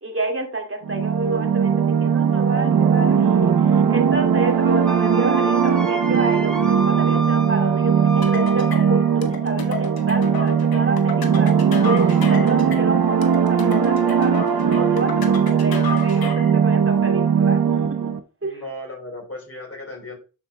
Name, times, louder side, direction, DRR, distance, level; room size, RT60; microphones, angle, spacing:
voice 1, 0.0-11.5 11.8-12.0 12.3-18.1 18.4-18.6, right 2 dB, 40° right, 2 dB, 2.1 m, -29 dB
sound 1, 0.8-18.2, right 7 dB, 80° right, 0.8 m, -19 dB
Wind instrument woodwind instrument, 4.8-9.2, left 1 dB, ahead, 1.8 m, -32 dB
sound 2, 8.2-16.6, left 5 dB, 90° left, 0.9 m, -32 dB
voice 2, 18.4-20.2, left 1 dB, 40° left, 0 dB, 3.6 m, -35 dB
12.0 x 4.4 x 2.2 m, 0.34 s
cardioid pair, 50°, 35 cm